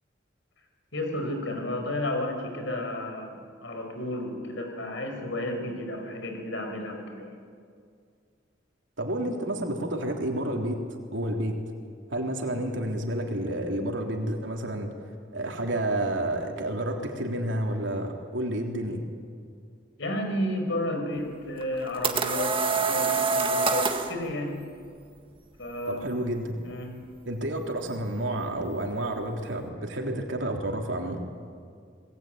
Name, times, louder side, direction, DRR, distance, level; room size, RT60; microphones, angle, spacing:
voice 1, 0.9-7.4 20.0-24.6 25.6-26.1 26.6-27.0, left 1 dB, 70° left, 4 dB, 5.4 m, -32 dB
voice 2, 9.0-10.8 11.1-11.5 12.1-14.9 15.3-19.0 25.9-26.6 27.3-31.2, right 1 dB, 75° right, 1 dB, 3.5 m, -30 dB
sound 1, 21.6-24.1, right 4 dB, 30° right, 1.8 m, -25 dB
27.0 x 20.5 x 9.3 m, 2.2 s
head